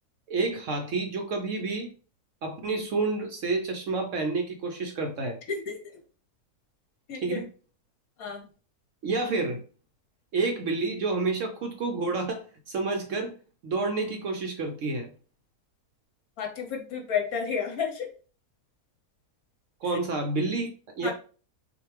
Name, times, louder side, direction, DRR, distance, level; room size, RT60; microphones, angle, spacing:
voice 1, 0.3-1.9 2.4-5.4 7.2-7.5 9.0-9.6 10.3-13.3 13.6-15.1 19.8-21.1, right 3 dB, 65° right, 5 dB, 0.8 m, -29 dB
voice 2, 7.1-7.4 8.2-8.4 16.4-18.1 21.0-21.1, left 6 dB, 65° left, 2 dB, 1.4 m, -31 dB
6.0 x 2.5 x 3.2 m, 0.39 s
omnidirectional pair, 1.7 m